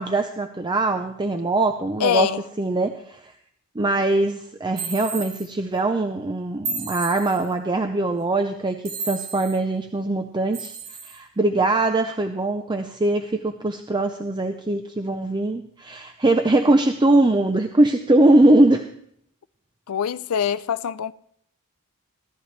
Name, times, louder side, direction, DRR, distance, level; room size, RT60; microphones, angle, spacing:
voice 1, 0.0-2.3 2.6-3.3 3.8-10.7 11.0-18.9, right 2 dB, 20° right, 0.5 m, -21 dB
voice 2, 2.0-2.4 19.9-21.1, left 8 dB, 70° left, 0.4 m, -24 dB
sound 1, 4.8-5.5 6.6-7.5 8.8-9.6 10.5-11.2, right 4 dB, 65° right, 2.2 m, -32 dB
15.5 x 13.5 x 3.3 m
head